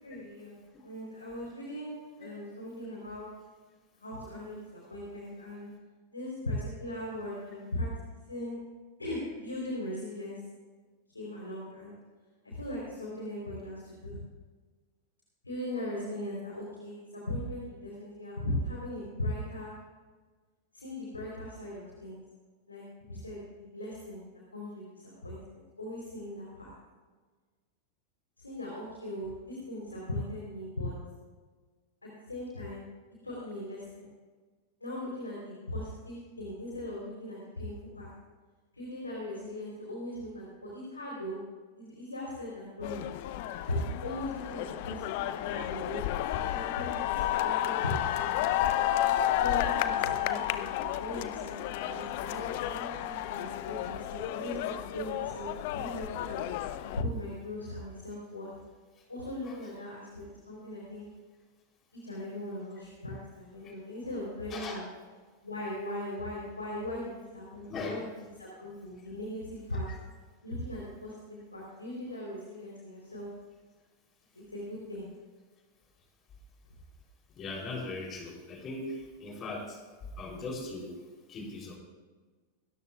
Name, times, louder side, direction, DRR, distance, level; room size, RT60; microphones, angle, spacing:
voice 1, 0.0-0.6 0.8-3.3 4.0-5.7 6.1-7.9 8.3-8.6 9.0-10.4 11.1-11.9 12.4-14.2 15.4-19.7 20.7-22.2 22.7-24.2 24.5-26.7 28.4-30.9 32.0-32.8 33.2-34.1 34.8-38.1 38.7-41.4 41.8-43.0 43.7-46.0 46.3-48.3 49.4-56.4 56.8-58.5 59.1-61.1 62.0-64.8 65.4-69.9 70.4-73.3 74.3-75.0, left 1 dB, 80° left, -4 dB, 3.7 m, -39 dB
sound 1, 42.8-57.0, left 12 dB, 50° left, 0.6 m, -32 dB
voice 2, 64.5-64.9 67.7-68.0 69.9-70.0 77.4-79.8 80.2-81.0 81.3-81.8, left 2 dB, 30° left, 0 dB, 3.4 m, -39 dB
26.5 x 13.5 x 2.4 m, 1.4 s
figure-of-eight pair, 90°, 0 cm